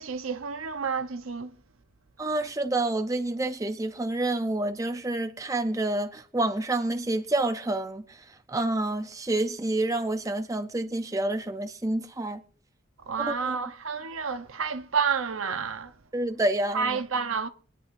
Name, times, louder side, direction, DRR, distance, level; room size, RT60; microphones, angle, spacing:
voice 1, 0.0-1.6 13.0-15.9 16.7-17.5, right 5 dB, 85° right, 0.8 m, -30 dB
voice 2, 2.2-12.4 13.2-13.5 16.1-17.0, right 2 dB, 15° right, 0.5 m, -28 dB
22.5 x 9.9 x 2.6 m
head